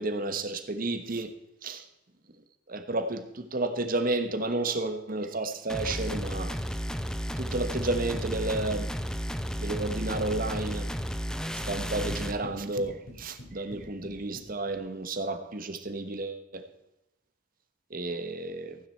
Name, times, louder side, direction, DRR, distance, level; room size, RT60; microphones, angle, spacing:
voice 1, 0.0-1.3 1.6-1.8 2.7-6.5 7.4-8.9 9.6-10.9 11.7-16.6 17.9-18.8, right 2 dB, 45° right, 9 dB, 1.2 m, -31 dB
sound 1, 5.7-12.4, equal, 5° left, 0.6 m, -33 dB
sound 2, 12.1-15.0, equal, 75° left, 4.3 m, -47 dB
15.0 x 9.6 x 4.5 m, 0.92 s
head